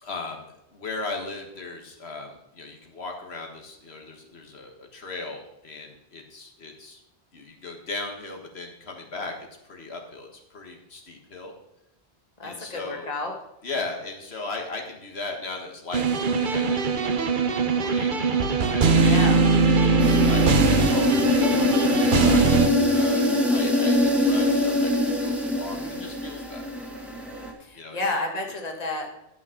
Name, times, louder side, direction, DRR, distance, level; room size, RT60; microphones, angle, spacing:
voice 1, 0.0-7.0 7.3-11.5 12.4-13.1 13.6-18.1 18.7-19.2 19.6-26.6 27.8-28.0, left 3 dB, 90° left, 2 dB, 1.9 m, -37 dB
voice 2, 12.4-13.3 19.0-19.4 25.7-26.0 27.6-29.1, left 2 dB, 40° left, 2 dB, 1.7 m, -31 dB
sound 1, 15.9-22.7, right 4 dB, 55° right, 1.0 m, -21 dB
sound 2, 20.0-27.5, left 1 dB, ahead, 1.8 m, -23 dB
12.5 x 6.2 x 5.9 m, 0.83 s
omnidirectional pair, 1.0 m